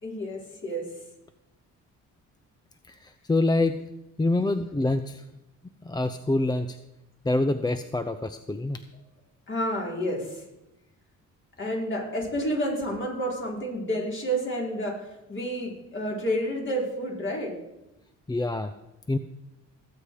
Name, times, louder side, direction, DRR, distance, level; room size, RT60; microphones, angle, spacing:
voice 1, 0.0-0.9 9.5-10.4 11.6-17.5, equal, 40° left, -2 dB, 4.9 m, -30 dB
voice 2, 2.9-3.8 4.2-5.2 5.8-6.8 7.2-8.8 18.3-18.7 19.1-19.2, left 2 dB, 15° left, 10 dB, 0.6 m, -26 dB
18.5 x 8.5 x 5.0 m, 0.93 s
cardioid pair, 90°, 30 cm